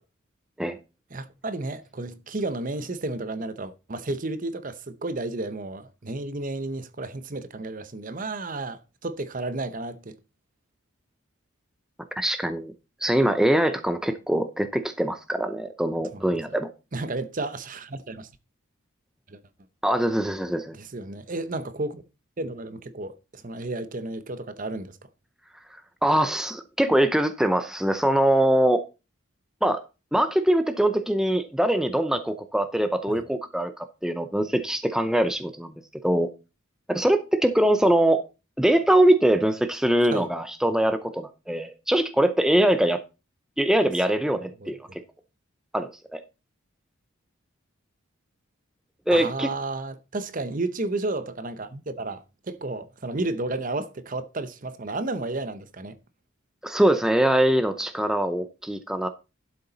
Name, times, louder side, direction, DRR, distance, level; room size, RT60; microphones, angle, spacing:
voice 1, 1.1-10.2 16.1-16.3 16.9-18.3 19.3-19.4 20.7-22.0 22.4-25.0 33.1-33.2 40.1-40.3 44.6-44.7 49.1-56.0, right 2 dB, 40° right, 0.7 m, -32 dB
voice 2, 12.2-12.7 13.0-16.7 19.8-20.8 26.0-28.8 29.6-29.8 30.1-35.7 36.0-36.3 36.9-38.2 38.6-43.0 43.6-44.8 45.7-46.2 49.1-49.5 56.6-59.1, right 1 dB, 5° right, 0.6 m, -23 dB
11.5 x 6.9 x 4.0 m
head